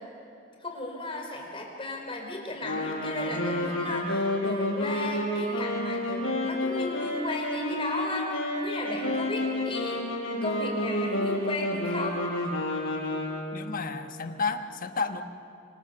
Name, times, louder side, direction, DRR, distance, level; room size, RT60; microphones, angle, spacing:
voice 1, 0.6-10.0 10.4-12.2, left 2 dB, 25° left, 1 dB, 4.5 m, -35 dB
sound 1, 2.6-13.6, left 1 dB, 70° left, 6.8 m, -30 dB
voice 2, 13.5-15.2, left 4 dB, 45° left, 8 dB, 1.2 m, -31 dB
25.5 x 25.5 x 6.9 m, 2.8 s
head